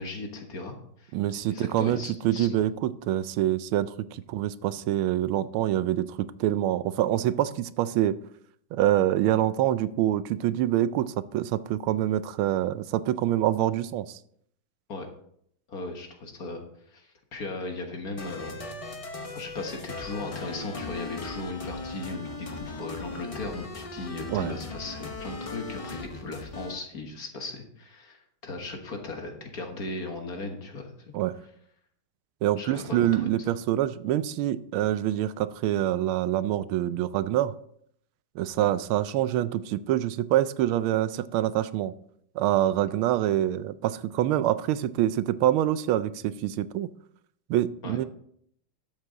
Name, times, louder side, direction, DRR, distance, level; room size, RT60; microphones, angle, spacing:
voice 1, 0.0-1.1 1.5-2.5 14.9-15.1 15.7-18.6 19.3-30.9 32.6-33.3 38.6-38.7 47.8-48.0, left 2 dB, 50° left, 4 dB, 1.7 m, -37 dB
voice 2, 1.1-8.2 8.7-14.2 24.3-24.5 31.1-31.4 32.4-37.5 38.4-41.9 42.3-46.9 47.5-48.1, right 12 dB, 90° right, 15 dB, 1.4 m, -26 dB
sound 1, 18.2-26.7, left 3 dB, 65° left, 0.3 m, -38 dB
12.0 x 7.5 x 3.8 m, 0.68 s
omnidirectional pair, 2.2 m